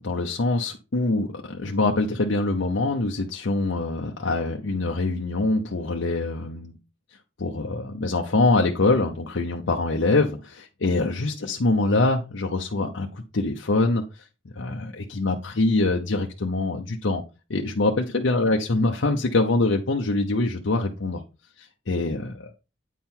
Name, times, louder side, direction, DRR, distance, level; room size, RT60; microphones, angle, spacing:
voice 1, 0.0-6.8 7.4-10.6 10.8-14.2 14.5-17.2 17.5-21.2 21.6-22.5, left 2 dB, 80° left, 0.7 m, -24 dB
9.1 x 4.4 x 3.7 m
head